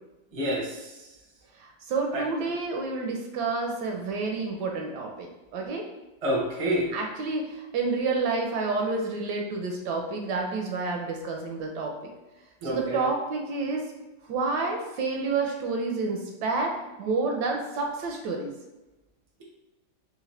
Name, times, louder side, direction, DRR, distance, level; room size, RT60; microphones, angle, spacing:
voice 1, 0.3-0.9 2.1-2.2 6.2-6.9 12.6-13.0, equal, 45° right, -3 dB, 0.4 m, -28 dB
voice 2, 1.6-5.8 6.9-11.9 12.6-13.9 14.3-18.5, right 3 dB, 75° right, 2 dB, 1.0 m, -29 dB
3.7 x 2.9 x 3.1 m, 1.0 s
omnidirectional pair, 2.0 m